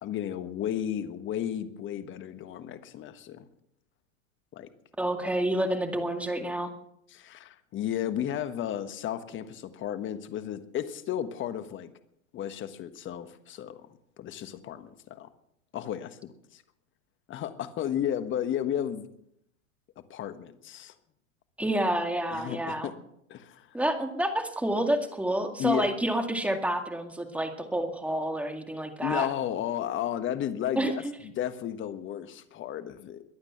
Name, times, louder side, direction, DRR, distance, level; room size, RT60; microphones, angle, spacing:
voice 1, 0.0-3.5 4.5-4.7 7.1-11.9 12.3-13.8 14.2-15.3 15.7-16.6 17.3-19.0 20.1-20.9 22.3-23.0 23.3-23.8 25.6-26.0 29.0-33.2, left 10 dB, 30° left, 11 dB, 1.4 m, -33 dB
voice 2, 5.0-6.7 21.6-22.9 23.7-29.3 30.8-30.9, right 1 dB, 5° right, 6 dB, 2.0 m, -29 dB
22.5 x 8.8 x 5.8 m, 0.74 s
hypercardioid pair, 115°, 40 cm